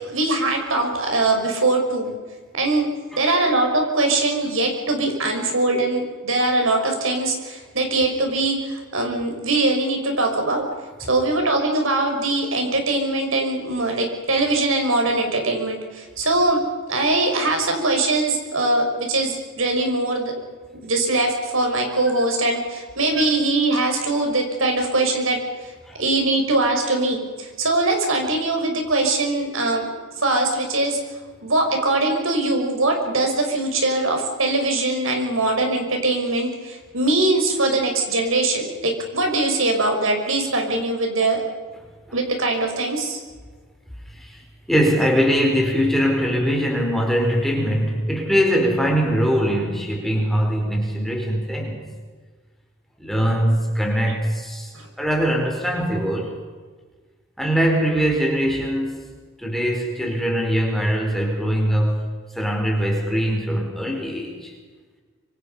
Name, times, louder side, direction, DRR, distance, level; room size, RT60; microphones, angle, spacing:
voice 1, 0.1-2.1 2.6-2.9 3.1-10.6 11.1-16.6 16.9-20.3 20.8-25.4 26.0-29.8 30.2-31.0 31.4-41.4 42.1-43.2 54.7-54.9, right 2 dB, 70° right, 3 dB, 5.9 m, -22 dB
voice 2, 3.1-3.5 5.7-5.9 23.2-23.3 25.9-26.0 44.1-44.4 44.7-51.8 53.0-54.7 55.0-56.4 57.4-59.1 59.4-62.0 62.3-64.5, equal, ahead, 0 dB, 4.4 m, -22 dB
26.5 x 26.0 x 5.6 m, 1.4 s
head